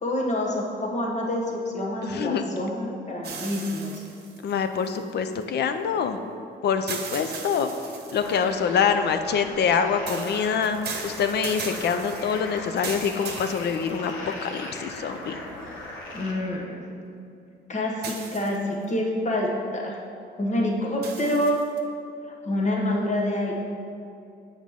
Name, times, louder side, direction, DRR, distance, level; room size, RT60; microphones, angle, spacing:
voice 1, 0.0-4.0 16.1-16.8 17.7-20.0 20.4-21.6 22.4-23.5, left 1 dB, 35° left, -1 dB, 1.2 m, -27 dB
voice 2, 2.0-2.7 4.4-6.2 6.6-7.7 8.1-14.1 14.4-15.4, left 6 dB, 55° left, 8 dB, 0.5 m, -25 dB
sound 1, 3.2-5.4 6.9-8.5 10.1-14.3 15.0-15.1 18.0-18.9 21.0-21.8, right 5 dB, 55° right, 0.9 m, -38 dB
sound 2, 8.2-16.3, left 1 dB, 90° left, 1.1 m, -39 dB
7.4 x 4.9 x 3.6 m, 2.5 s
cardioid pair, 90°, 20 cm